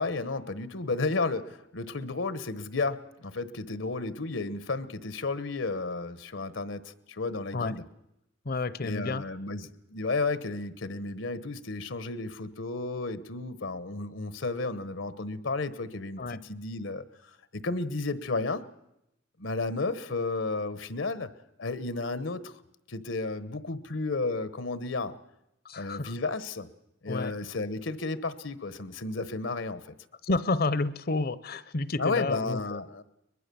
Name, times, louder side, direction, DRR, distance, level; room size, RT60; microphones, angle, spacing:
voice 1, 0.0-7.8 8.8-18.6 19.4-21.3 21.6-22.5 22.9-25.1 25.8-26.7 27.0-29.9 32.0-33.0, left 3 dB, 80° left, 14 dB, 1.1 m, -33 dB
voice 2, 8.5-9.2 16.2-16.4 25.6-26.1 27.1-27.3 30.2-32.8, left 3 dB, 50° left, 17 dB, 0.7 m, -30 dB
22.5 x 21.0 x 6.9 m, 0.85 s
head